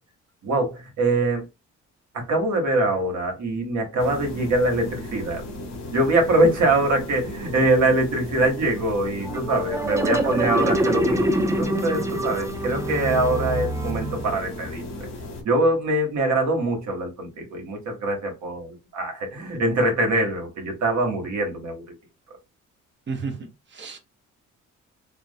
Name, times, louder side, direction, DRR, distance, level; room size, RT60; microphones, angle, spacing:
voice 1, 0.4-1.4 2.1-5.4 5.9-15.1 15.4-21.8, right 2 dB, 65° right, 1.1 m, -23 dB
sound 1, 4.0-15.4, left 2 dB, 60° left, 0.9 m, -36 dB
sound 2, 9.2-14.6, right 1 dB, 10° right, 0.3 m, -25 dB
voice 2, 23.1-24.0, right 4 dB, 40° right, 0.9 m, -33 dB
2.3 x 2.0 x 2.6 m
cardioid pair, 90°, 30 cm